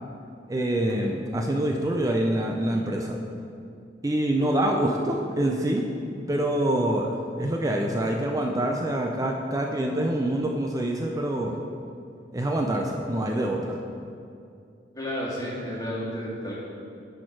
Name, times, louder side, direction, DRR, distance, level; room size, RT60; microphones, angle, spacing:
voice 1, 0.5-3.2 4.0-5.9 6.3-11.6 12.3-13.8, right 1 dB, 20° right, 1 dB, 0.4 m, -26 dB
sound 1, 0.9-1.5 2.7-3.3 4.4-4.9 6.2-6.7 7.8-8.1, left 1 dB, 75° right, 1.0 m, -43 dB
voice 2, 14.9-16.5, equal, 20° left, -7 dB, 2.0 m, -31 dB
10.5 x 4.4 x 4.5 m, 2.5 s
head